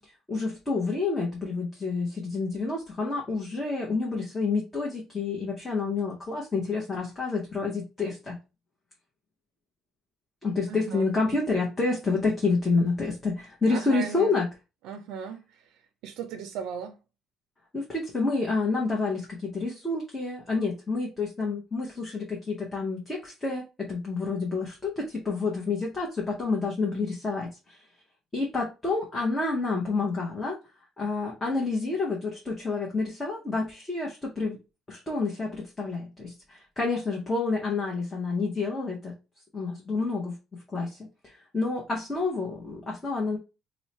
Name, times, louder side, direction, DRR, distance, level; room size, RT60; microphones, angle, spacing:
voice 1, 0.0-8.4 10.4-14.5 17.7-27.8 28.3-30.6 31.0-34.6 34.9-39.1 39.5-41.0 41.2-43.4, left 3 dB, 15° left, 0.7 m, -29 dB
voice 2, 10.7-11.1 13.7-14.3 14.8-15.4 16.0-17.0, right 7 dB, 90° right, 0.4 m, -37 dB
3.0 x 2.0 x 4.1 m
cardioid pair, 165°, 0 cm